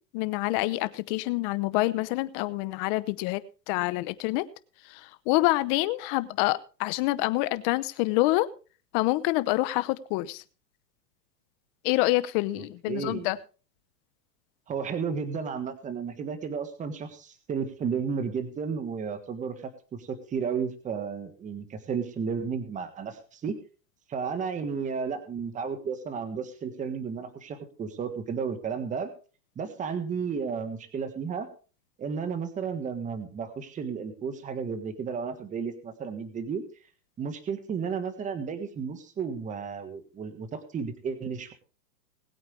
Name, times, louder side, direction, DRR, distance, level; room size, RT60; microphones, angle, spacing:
voice 1, 0.1-4.4 4.9-8.5 8.9-10.4 11.8-13.4, left 19 dB, 35° left, 15 dB, 0.9 m, -27 dB
voice 2, 12.6-13.3 14.7-23.6 24.1-29.1 29.5-31.5 32.0-36.6 37.2-41.5, right 6 dB, 15° right, 10 dB, 1.5 m, -33 dB
20.5 x 8.7 x 3.3 m, 0.36 s
supercardioid pair, 150°, 49 cm